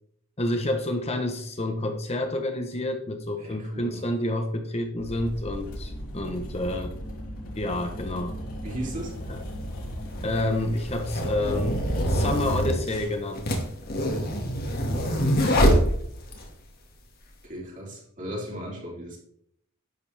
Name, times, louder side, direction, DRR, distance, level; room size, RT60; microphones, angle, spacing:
voice 1, 0.4-6.9 7.6-8.4 9.3-9.4 10.2-13.5 14.9-15.2 15.4-15.6, left 1 dB, 30° left, 5 dB, 0.9 m, -29 dB
voice 2, 3.4-4.1 8.6-9.2 17.4-19.2, right 1 dB, 35° right, -3 dB, 3.4 m, -36 dB
sound 1, 5.0-12.3, equal, 65° left, 3.7 m, -37 dB
sound 2, 9.0-9.1 10.1-16.5, equal, 45° left, 2.0 m, -25 dB
11.0 x 8.1 x 3.4 m, 0.68 s
head